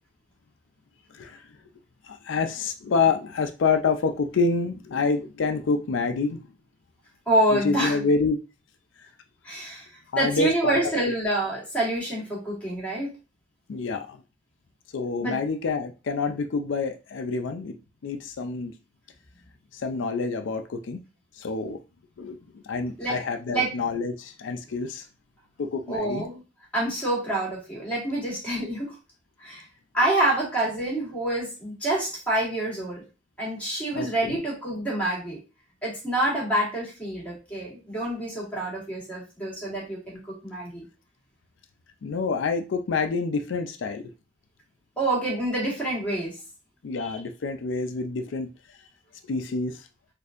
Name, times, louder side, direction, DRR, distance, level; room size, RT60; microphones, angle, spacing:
voice 1, 2.0-6.4 7.5-8.4 10.1-10.8 13.7-14.2 14.9-17.8 18.0-18.7 19.7-21.0 21.4-21.8 22.2-25.1 25.6-26.2 33.9-34.4 42.0-44.1 46.8-48.5 49.3-49.9, left 4 dB, 90° left, 7 dB, 0.4 m, -27 dB
voice 2, 7.3-8.0 9.4-13.1 15.2-15.4 23.0-23.2 23.5-23.7 25.9-26.4 26.7-29.0 29.4-29.6 29.9-33.0 33.4-35.4 35.8-40.8 45.0-46.4, right 1 dB, 5° left, -4 dB, 1.8 m, -27 dB
4.2 x 2.6 x 2.5 m, 0.30 s
head